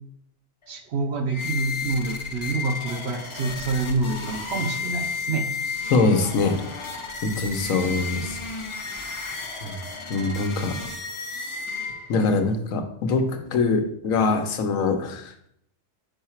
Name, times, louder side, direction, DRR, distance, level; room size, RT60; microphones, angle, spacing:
voice 1, 0.7-5.5, right 3 dB, 60° right, 6 dB, 0.9 m, -27 dB
sound 1, 1.3-12.3, left 4 dB, 40° left, 0.4 m, -33 dB
voice 2, 5.9-6.6 7.2-8.4 9.6-9.8 10.1-10.8 12.1-15.3, left 3 dB, 85° left, 6 dB, 1.2 m, -23 dB
5.5 x 4.8 x 4.3 m, 0.69 s
omnidirectional pair, 1.4 m